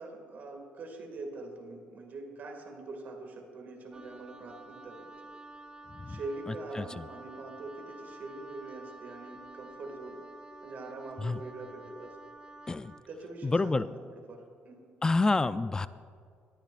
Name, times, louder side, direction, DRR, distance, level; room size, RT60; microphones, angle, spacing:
voice 1, 0.0-5.1 6.1-10.2 10.6-12.2 13.1-14.9, right 2 dB, 50° right, 2 dB, 2.1 m, -43 dB
Wind instrument woodwind instrument, 3.9-13.1, right 2 dB, 20° right, 0.6 m, -50 dB
voice 2, 6.5-7.1 11.2-11.4 12.7-12.9 13.4-13.9 15.0-15.9, left 3 dB, 20° left, 15 dB, 0.3 m, -28 dB
21.0 x 10.0 x 2.5 m, 2.1 s
cardioid pair, 110°, 4 cm